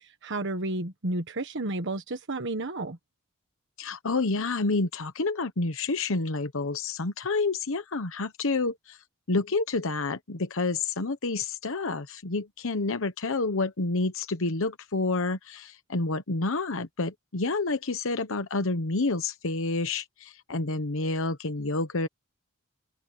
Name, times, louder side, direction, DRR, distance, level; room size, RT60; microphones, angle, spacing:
voice 1, 0.2-3.0, right 2 dB, 55° right, 1.3 m, -31 dB
voice 2, 3.8-9.0 9.3-22.1, left 3 dB, 60° left, 1.0 m, -29 dB
open air
head